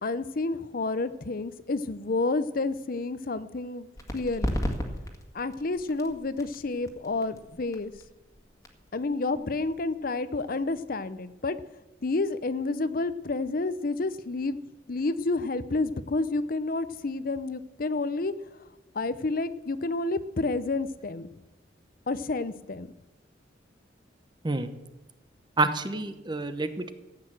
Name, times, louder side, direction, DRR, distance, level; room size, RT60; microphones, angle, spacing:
voice 1, 0.0-4.6 5.3-7.9 8.9-11.6 12.0-14.6 14.9-18.3 18.9-21.3 22.1-22.9, left 3 dB, 50° left, 14 dB, 0.7 m, -30 dB
sound 1, 3.9-11.3, equal, 15° left, 1.8 m, -37 dB
voice 2, 25.6-26.9, right 3 dB, 25° right, 10 dB, 0.9 m, -28 dB
14.5 x 8.7 x 7.7 m, 1.0 s
head